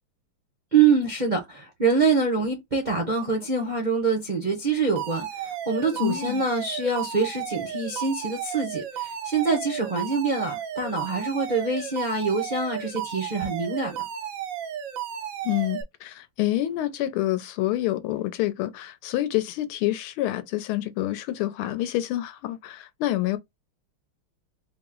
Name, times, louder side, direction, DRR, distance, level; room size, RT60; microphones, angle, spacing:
voice 1, 0.7-5.3 5.7-14.0, right 4 dB, 50° right, 0.5 m, -25 dB
Alarm, 5.0-15.8, right 9 dB, 85° right, 0.7 m, -34 dB
voice 2, 6.0-6.4 15.4-23.4, left 15 dB, 85° left, 1.5 m, -27 dB
4.2 x 2.0 x 3.7 m
omnidirectional pair, 2.3 m